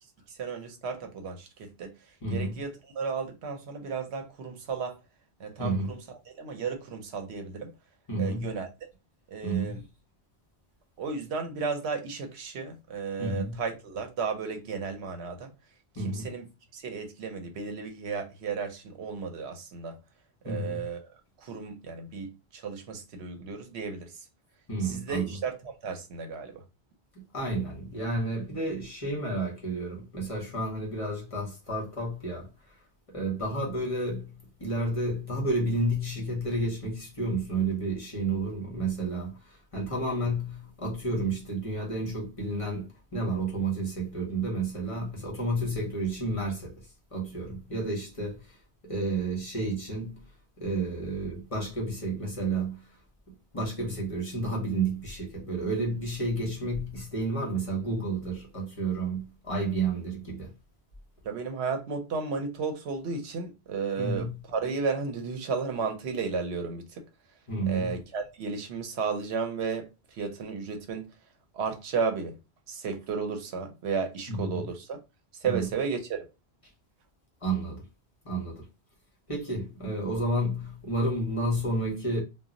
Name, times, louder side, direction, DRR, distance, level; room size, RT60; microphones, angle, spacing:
voice 1, 0.3-1.9 2.3-5.0 5.4-7.7 8.2-8.9 9.3-9.8 11.0-15.5 16.0-16.5 16.7-20.0 20.4-21.1 21.4-24.3 24.8-26.6 61.2-67.0 67.7-71.1 71.5-72.4 72.7-75.0 75.4-76.2, right 5 dB, 80° right, 0.9 m, -34 dB
voice 2, 2.2-2.6 5.6-5.9 8.1-8.5 9.4-9.8 13.2-13.6 16.0-16.3 20.4-20.8 24.7-25.3 27.2-32.5 33.1-34.3 34.6-46.8 47.1-48.6 48.8-50.2 50.6-52.8 53.3-60.5 64.0-64.3 67.5-68.0 74.3-74.7 75.4-75.7 77.4-77.8 78.2-78.6 79.3-82.2, right 2 dB, 35° left, 0.8 m, -31 dB
2.2 x 2.0 x 3.6 m
omnidirectional pair, 1.1 m